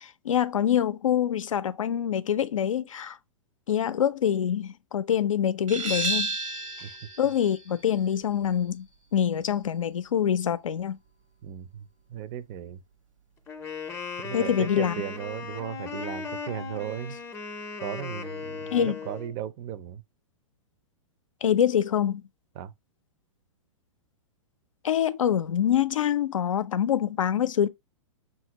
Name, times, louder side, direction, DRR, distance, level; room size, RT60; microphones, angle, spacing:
voice 1, 0.0-3.2 3.7-6.3 7.2-8.9 9.1-11.0 14.3-14.9 18.7-18.9 21.4-22.2 24.8-27.7, left 9 dB, 80° left, 0.5 m, -25 dB
sound 1, 5.7-11.1, right 3 dB, 85° right, 1.1 m, -34 dB
voice 2, 11.4-12.8 14.2-17.2 17.8-20.0 22.6-22.7, right 10 dB, 35° right, 0.5 m, -36 dB
Wind instrument woodwind instrument, 13.5-19.3, left 5 dB, 15° left, 0.5 m, -37 dB
5.6 x 2.5 x 2.8 m
hypercardioid pair, 115°, 17 cm